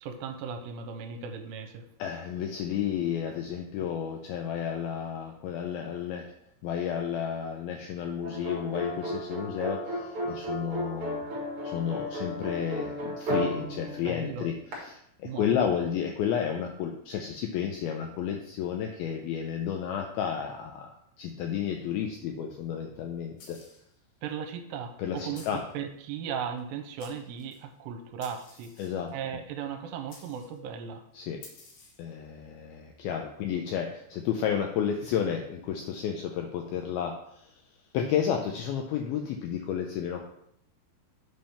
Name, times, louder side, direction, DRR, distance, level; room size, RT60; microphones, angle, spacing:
voice 1, 0.0-1.9 14.0-14.5 15.2-16.0 24.2-28.7 29.1-31.0, right 7 dB, 85° right, 6 dB, 2.7 m, -37 dB
voice 2, 2.0-6.3 6.6-11.2 11.6-14.5 14.9-20.9 21.2-23.6 25.0-25.6 28.8-29.1 31.1-31.4 32.0-37.5 37.9-40.2, left 8 dB, 85° left, 3 dB, 2.2 m, -32 dB
sound 1, 8.2-14.7, equal, 50° right, 1.8 m, -34 dB
sound 2, 23.4-23.9 25.3-25.7 26.6-26.7 27.0-27.6 28.2-29.1 30.1-30.6 31.4-32.1, left 3 dB, 65° left, 2.9 m, -52 dB
7.9 x 3.5 x 5.6 m, 0.73 s
omnidirectional pair, 4.9 m